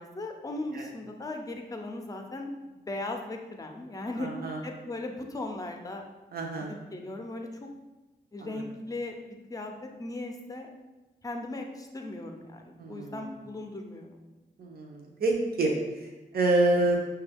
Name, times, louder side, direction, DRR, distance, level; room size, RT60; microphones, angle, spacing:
voice 1, 0.0-2.5 2.9-4.3 4.6-6.0 6.6-7.7 8.3-9.1 9.5-10.7 11.2-14.2, left 2 dB, 20° left, 3 dB, 0.4 m, -37 dB
voice 2, 4.2-4.6 6.3-6.7 8.5-8.6 12.8-13.3 14.6-17.0, right 2 dB, 65° right, 0 dB, 0.6 m, -28 dB
5.8 x 2.3 x 3.4 m, 1.1 s
wide cardioid pair, 160°, 17 cm